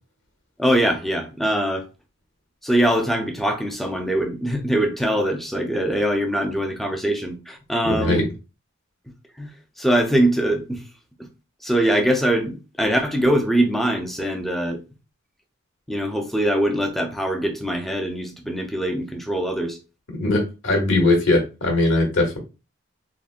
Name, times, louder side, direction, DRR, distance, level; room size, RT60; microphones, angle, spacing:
voice 1, 0.6-1.9 2.6-8.2 9.4-9.5 9.8-10.8 11.6-14.8 15.9-19.8, right 1 dB, ahead, 0.3 m, -22 dB
voice 2, 7.8-8.2 20.2-22.4, left 2 dB, 60° left, 1.1 m, -20 dB
3.6 x 2.1 x 2.4 m
head